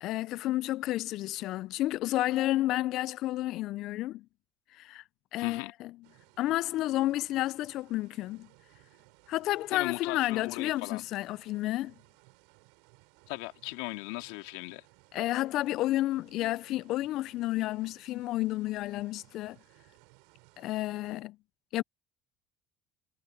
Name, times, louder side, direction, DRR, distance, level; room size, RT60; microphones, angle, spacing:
voice 1, 0.0-4.2 4.7-5.0 5.3-5.9 6.4-8.5 9.3-11.9 15.1-19.6 20.6-21.4 21.7-21.8, left 16 dB, 60° left, 0.4 m, -31 dB
voice 2, 5.4-5.7 9.7-11.0 13.3-14.8, left 24 dB, 80° left, 2.8 m, -38 dB
sound 1, 6.0-21.2, right 31 dB, 80° right, 5.6 m, -61 dB
supercardioid pair, 90°, 0 cm